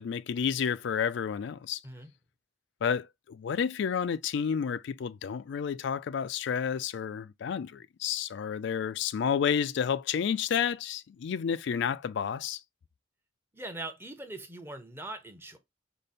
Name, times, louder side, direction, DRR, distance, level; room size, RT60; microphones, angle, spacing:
voice 1, 0.0-1.8 2.8-12.6, left 7 dB, 60° left, 0.3 m, -30 dB
voice 2, 13.5-15.6, right 2 dB, 10° right, 0.7 m, -41 dB
5.0 x 2.1 x 4.1 m
head